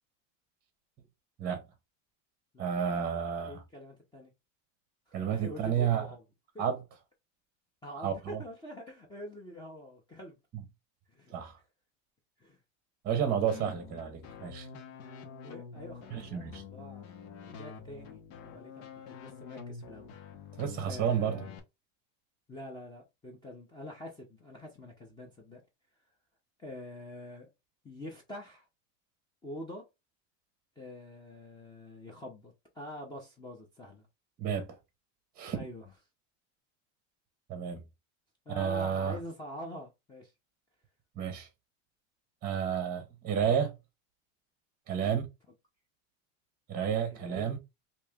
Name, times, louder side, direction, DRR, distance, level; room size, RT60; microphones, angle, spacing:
voice 1, 2.6-3.6 5.1-6.0 6.6-6.8 8.0-8.4 10.5-10.6 11.3-11.6 13.0-14.7 16.1-16.6 20.6-21.4 34.4-34.8 35.4-35.6 37.5-37.8 38.5-39.2 41.2-41.5 42.4-43.8 44.9-45.3 46.7-47.6, right 8 dB, 25° right, 0.7 m, -31 dB
voice 2, 3.1-4.3 5.1-6.2 6.5-6.6 7.8-10.4 11.1-11.3 12.4-12.6 13.2-13.4 15.4-20.1 20.9-21.5 22.5-25.6 26.6-27.5 27.8-28.6 29.4-29.8 30.8-34.1 35.5-35.8 38.5-40.3 45.0-45.2 47.1-47.5, left 1 dB, 10° left, 0.7 m, -45 dB
sound 1, 13.5-21.6, left 6 dB, 75° left, 1.1 m, -47 dB
3.0 x 2.8 x 3.5 m
supercardioid pair, 145°, 38 cm